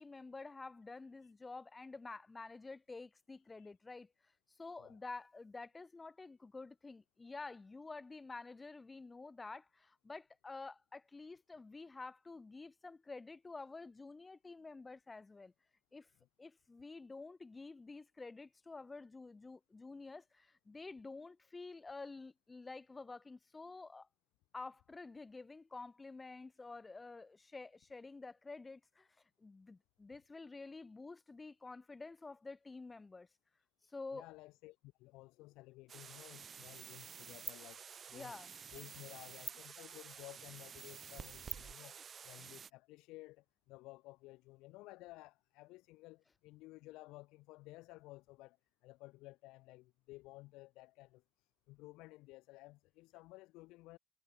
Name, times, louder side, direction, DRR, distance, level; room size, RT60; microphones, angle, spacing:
voice 1, 0.0-4.1 4.5-15.5 15.9-16.1 16.4-24.1 24.5-29.1 29.4-33.3 33.9-34.3 38.1-38.5, left 3 dB, 20° left, 3.8 m, -50 dB
voice 2, 33.8-37.8 38.1-38.4 38.7-41.9 42.2-48.6 48.8-54.0, left 20 dB, 75° left, 5.3 m, -55 dB
sound 1, 35.9-42.7, right 7 dB, 40° right, 5.7 m, -49 dB
supercardioid pair, 90°, 0 cm